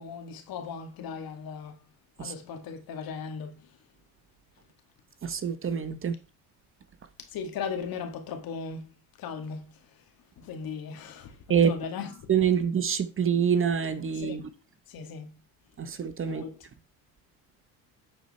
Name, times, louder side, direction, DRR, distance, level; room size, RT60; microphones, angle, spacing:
voice 1, 0.0-1.8 2.2-3.7 7.3-8.9 9.2-9.6 10.4-12.3 14.1-14.4 14.9-15.3 16.3-16.5, left 6 dB, 60° left, 2.2 m, -37 dB
voice 2, 5.2-6.1 11.5-11.7 12.3-14.4 15.8-16.4, right 7 dB, 35° right, 1.0 m, -26 dB
10.0 x 4.6 x 4.3 m
supercardioid pair, 85°, 39 cm